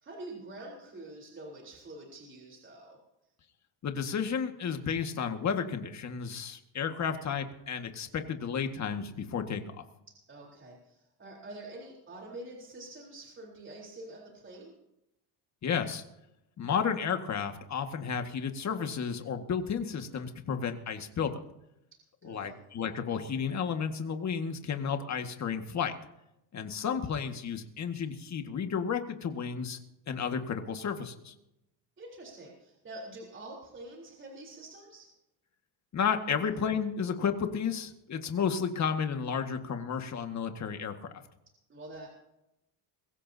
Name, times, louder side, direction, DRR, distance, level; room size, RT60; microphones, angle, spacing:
voice 1, 0.0-3.0 10.1-14.8 22.2-22.6 32.0-35.1 41.7-42.1, right 2 dB, 25° right, -1 dB, 4.0 m, -46 dB
voice 2, 3.8-9.6 15.6-16.0 16.6-21.3 22.2-25.9 26.5-29.8 30.1-31.3 35.9-41.1, left 7 dB, 40° left, 6 dB, 1.9 m, -32 dB
22.5 x 15.5 x 2.8 m, 0.86 s
cardioid pair, 130°, 44 cm